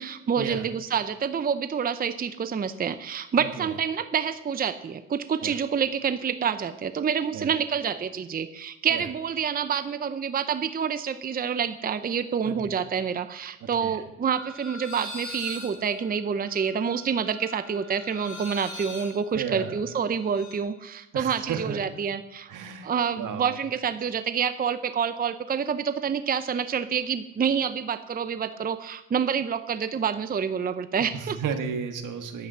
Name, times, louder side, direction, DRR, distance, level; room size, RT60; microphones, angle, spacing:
voice 1, 0.0-22.5 22.8-31.4, right 7 dB, 30° right, 11 dB, 0.6 m, -28 dB
sound 1, 14.3-20.6, left 1 dB, 75° left, 3.0 m, -41 dB
voice 2, 19.3-19.8 21.1-21.8 22.5-22.9 23.1-23.5 30.9-32.5, right 6 dB, 80° right, 7 dB, 1.6 m, -33 dB
11.0 x 8.5 x 7.2 m, 0.96 s
cardioid pair, 105°, 31 cm